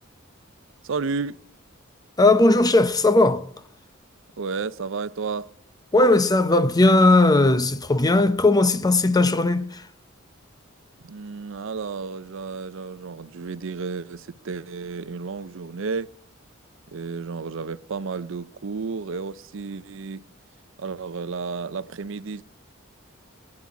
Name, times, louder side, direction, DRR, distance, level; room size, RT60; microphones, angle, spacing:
voice 1, 0.8-1.4 4.4-5.5 11.0-16.1 16.9-20.2 20.8-22.4, right 4 dB, 70° right, 0.5 m, -32 dB
voice 2, 2.2-3.5 5.9-9.8, left 2 dB, 20° left, 0.6 m, -18 dB
22.5 x 9.8 x 4.8 m
head